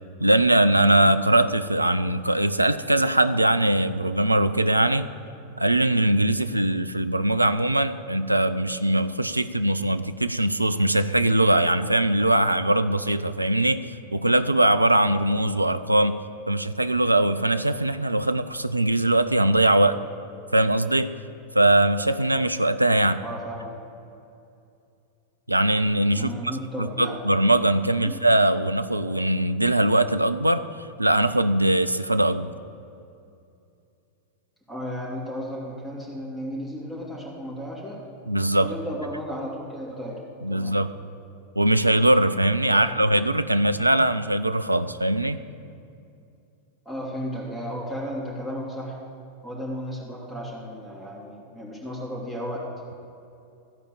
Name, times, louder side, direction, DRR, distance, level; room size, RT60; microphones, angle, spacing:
voice 1, 0.2-5.1 5.6-16.2 16.5-20.0 20.5-21.1 21.5-23.2 25.5-26.3 26.8-30.6 31.0-32.5 38.3-38.7 40.4-40.9 41.6-45.4, right 1 dB, 85° right, 11 dB, 0.4 m, -21 dB
voice 2, 23.2-23.7 26.1-27.2 28.0-28.1 34.7-38.0 38.6-40.2 40.5-40.8 42.7-42.8 46.8-49.0 49.4-52.6, equal, ahead, -6 dB, 3.3 m, -34 dB
14.5 x 5.0 x 8.4 m, 2.6 s
figure-of-eight pair, 90°, 0 cm